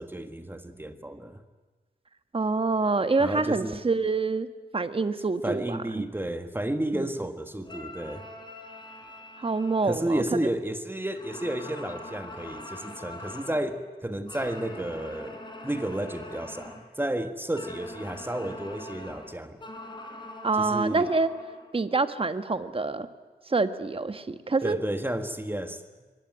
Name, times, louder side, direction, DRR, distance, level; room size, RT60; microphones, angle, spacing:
voice 1, 0.0-1.4 3.2-3.8 5.4-8.2 9.8-15.4 15.6-19.6 20.6-21.1 24.6-25.8, right 1 dB, 15° right, 8 dB, 1.6 m, -32 dB
voice 2, 2.3-4.5 4.7-6.0 6.9-7.1 9.4-10.2 20.4-21.3 21.7-23.1 23.5-24.8, right 3 dB, 35° right, 11 dB, 1.4 m, -26 dB
sound 1, 7.6-10.7 11.1-13.7 14.3-16.9 17.5-21.8, left 2 dB, 30° left, 4.1 m, -43 dB
23.5 x 18.5 x 9.3 m, 1.4 s
wide cardioid pair, 85°, 17 cm